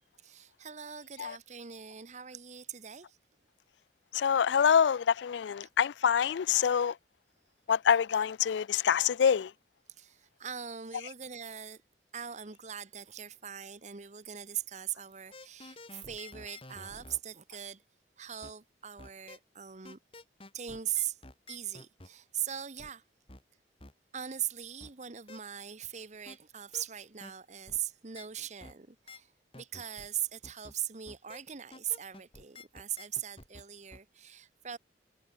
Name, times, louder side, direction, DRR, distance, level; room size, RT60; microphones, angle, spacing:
voice 1, 0.2-3.2 9.9-11.8 12.1-17.8 18.2-20.0 20.5-21.2 21.5-23.0 24.1-34.8, right 10 dB, 40° right, 1.0 m, -40 dB
voice 2, 4.1-7.0 7.7-9.5, left 7 dB, 85° left, 0.4 m, -26 dB
sound 1, 15.3-17.2 18.4-18.5 19.0-19.4 19.8-22.1 22.8-22.9 23.3-23.4 23.8-23.9 24.8-24.9 25.3-25.4 26.3-26.4 26.7-26.8 27.2-27.3 27.7-27.8 28.1-28.3 28.6-28.7 29.1-29.2 29.5-30.1 30.4-30.7 31.0-31.4 31.7-33.6 33.9-34.0, left 2 dB, 30° left, 6.1 m, -50 dB
head